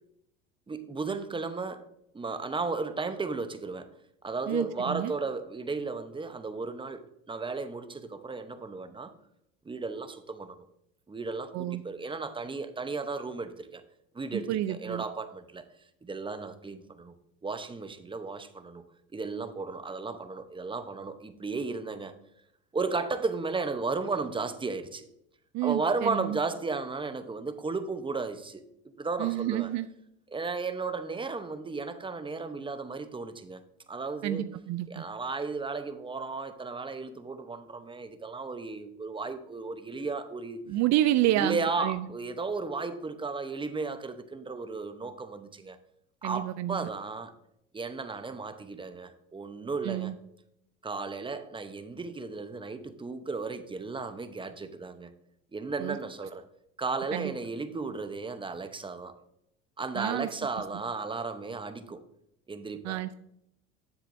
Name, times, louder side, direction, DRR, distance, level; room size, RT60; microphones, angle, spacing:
voice 1, 0.7-1.9 2.1-3.9 4.2-9.1 9.6-10.6 11.1-13.8 14.1-15.6 16.0-17.1 17.4-18.8 19.1-22.1 22.7-25.1 25.6-29.7 30.3-33.6 33.9-34.4 34.9-40.6 41.4-45.8 46.2-47.3 47.7-50.1 50.8-55.1 55.5-56.5 56.8-59.2 59.8-62.0 62.5-63.0, right 4 dB, 15° right, 0.8 m, -34 dB
voice 2, 4.5-5.1 11.5-11.8 14.3-15.0 25.5-26.4 29.2-29.9 34.2-35.0 40.7-42.1 46.2-46.9 49.8-50.2 55.8-56.0 57.1-57.3 59.9-60.3 62.8-63.1, right 14 dB, 55° right, 0.5 m, -29 dB
9.9 x 7.3 x 2.6 m
supercardioid pair, 90°, 33 cm